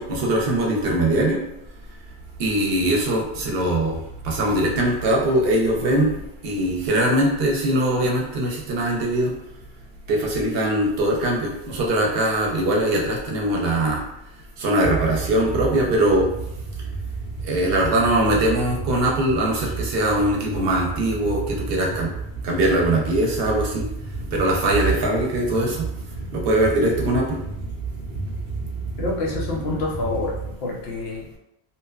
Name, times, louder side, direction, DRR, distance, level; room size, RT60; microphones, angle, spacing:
voice 1, 0.0-1.4 2.4-4.0 4.2-6.1 6.4-9.3 10.1-14.0 14.6-16.3 17.4-22.1 22.4-23.9 24.3-25.8 26.3-27.4, right 1 dB, 70° right, -1 dB, 0.8 m, -21 dB
sound 1, 14.8-30.6, right 4 dB, 90° left, 1.2 m, -31 dB
voice 2, 29.0-31.4, left 2 dB, 75° left, -2 dB, 0.9 m, -27 dB
2.7 x 2.1 x 2.3 m, 0.82 s
omnidirectional pair, 1.1 m